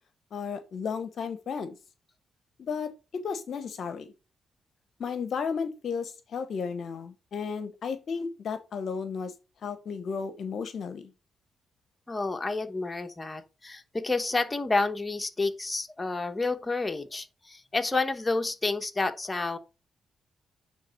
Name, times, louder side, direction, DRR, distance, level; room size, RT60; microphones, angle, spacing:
voice 1, 0.3-1.8 2.6-4.1 5.0-9.3 9.6-11.1, left 6 dB, 65° left, 0.8 m, -34 dB
voice 2, 12.1-19.6, left 3 dB, 25° left, 1.2 m, -29 dB
9.5 x 3.3 x 4.1 m
supercardioid pair, 60°, 0 cm